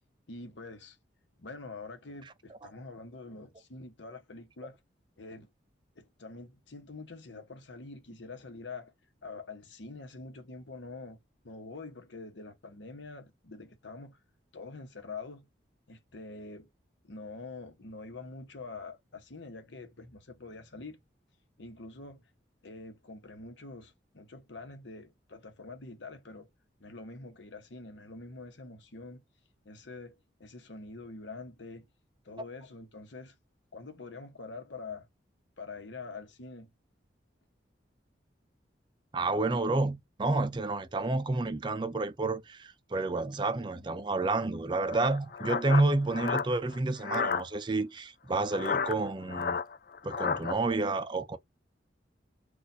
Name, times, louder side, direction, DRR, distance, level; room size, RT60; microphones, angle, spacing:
voice 1, 0.3-1.0 1.4-4.8 5.2-5.5 6.0-8.9 9.2-11.2 11.4-14.2 14.5-15.5 15.9-16.7 17.0-21.0 21.6-22.3 22.6-26.5 26.8-29.2 29.6-31.9 32.2-33.4 33.7-35.1 35.6-36.7, left 3 dB, 75° left, 1.0 m, -45 dB
voice 2, 39.1-49.6 50.0-51.4, right 2 dB, 25° right, 0.4 m, -30 dB
sound 1, 44.9-47.4 48.5-50.5, left 5 dB, 50° left, 0.3 m, -32 dB
4.1 x 2.4 x 2.5 m
head